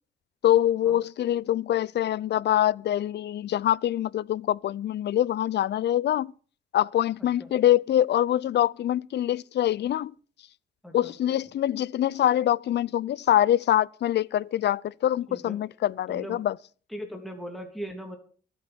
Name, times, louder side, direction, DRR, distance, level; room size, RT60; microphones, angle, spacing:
voice 1, 0.4-6.3 6.7-10.1 10.9-16.5, left 12 dB, 60° left, 0.6 m, -24 dB
voice 2, 7.2-7.5 10.8-11.2 15.3-15.6 16.1-16.4 16.9-18.2, equal, ahead, 3.1 m, -39 dB
24.0 x 8.1 x 4.5 m
cardioid pair, 90°, 20 cm